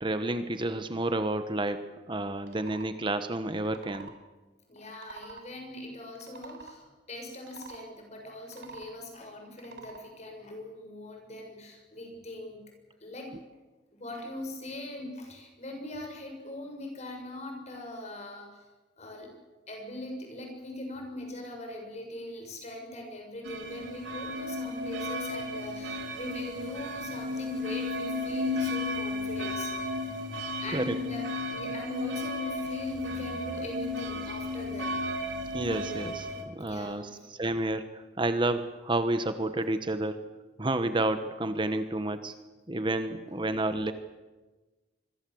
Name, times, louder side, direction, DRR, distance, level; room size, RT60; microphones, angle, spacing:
voice 1, 0.0-4.1 5.2-5.4 30.7-30.9 35.5-40.2 40.6-42.3 42.7-43.9, right 2 dB, 25° right, 10 dB, 1.2 m, -30 dB
sound 1, 2.4-2.9 3.5-4.2 4.8-5.5 6.1-6.8 7.4-7.8 8.4-9.0 9.5-10.0, right 5 dB, 65° right, 3.9 m, -47 dB
voice 2, 4.7-12.6 13.0-13.3 13.9-18.6 19.0-19.3 19.7-29.7 30.0-30.1 30.6-34.9 36.6-37.3 42.9-43.5, left 1 dB, 40° left, 3 dB, 7.0 m, -41 dB
sound 2, 23.4-36.4, left 2 dB, 90° right, 4.5 m, -34 dB
26.5 x 22.0 x 7.9 m, 1.2 s
head